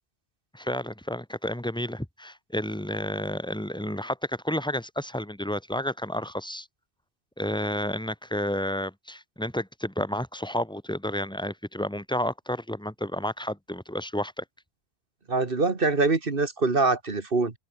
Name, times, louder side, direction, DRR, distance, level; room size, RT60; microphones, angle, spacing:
voice 1, 0.5-6.7 7.4-14.4, left 1 dB, 5° left, 1.9 m, -31 dB
voice 2, 15.3-17.5, right 3 dB, 60° right, 2.2 m, -24 dB
open air
omnidirectional pair, 1.1 m